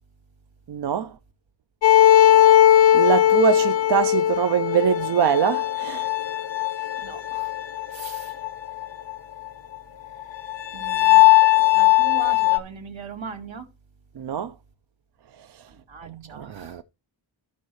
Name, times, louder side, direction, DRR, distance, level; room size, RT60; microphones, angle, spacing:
voice 1, 0.7-1.1 2.9-6.1 14.2-14.5 16.0-16.8, right 9 dB, 60° right, 0.5 m, -23 dB
sound 1, 1.8-9.1 9.5-9.6 9.7-9.8 10.2-12.6, left 13 dB, 75° left, 0.8 m, -18 dB
voice 2, 2.2-2.6 7.0-7.5 7.9-8.4 10.7-11.3 11.6-13.7 15.7-16.8, right 6 dB, 85° right, 2.0 m, -40 dB
14.5 x 5.5 x 3.1 m
wide cardioid pair, 135°, 45 cm